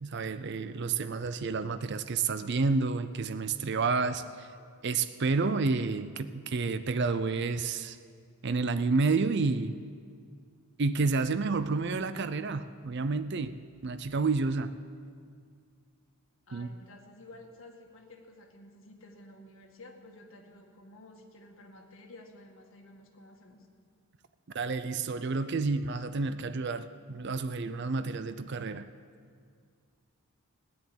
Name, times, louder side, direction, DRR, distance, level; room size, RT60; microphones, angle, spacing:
voice 1, 0.0-4.5 4.8-8.0 8.4-9.8 10.8-13.6 13.8-14.8 16.5-16.7 24.5-28.9, right 4 dB, 50° right, 11 dB, 0.5 m, -30 dB
voice 2, 16.5-23.7, left 1 dB, 60° left, 2 dB, 1.9 m, -52 dB
15.5 x 10.5 x 8.5 m, 2.1 s
head